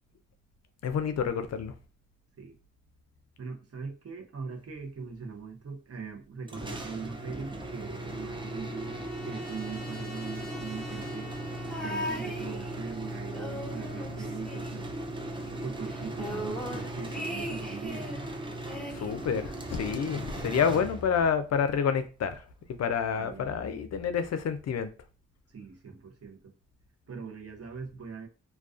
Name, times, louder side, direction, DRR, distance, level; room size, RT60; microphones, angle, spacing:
voice 1, 0.8-1.7 18.9-22.4 22.8-24.9, left 7 dB, 55° left, 0.4 m, -28 dB
voice 2, 3.4-11.3 11.8-14.9 15.6-18.2 23.1-23.5 25.5-26.5 27.1-28.3, right 5 dB, 50° right, 0.7 m, -41 dB
sound 1, 6.5-21.4, right 1 dB, 15° right, 0.5 m, -38 dB
Trumpet, 7.5-12.2, left 2 dB, 30° left, 0.7 m, -49 dB
sound 2, 11.7-13.0 13.3-15.2 15.5-15.6 15.9-18.2 18.7-19.9 20.8-20.9, equal, ahead, 1.1 m, -39 dB
2.3 x 2.2 x 2.4 m
supercardioid pair, 40°, 31 cm